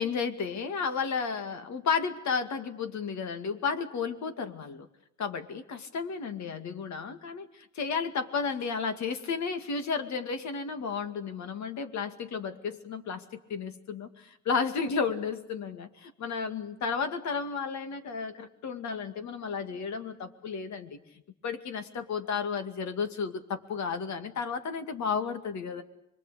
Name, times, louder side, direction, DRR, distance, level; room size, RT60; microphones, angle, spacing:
voice 1, 0.0-4.9 5.2-21.0 21.4-25.8, left 5 dB, 65° left, 8 dB, 2.3 m, -33 dB
26.0 x 22.5 x 8.2 m, 0.84 s
cardioid pair, 90°, 30 cm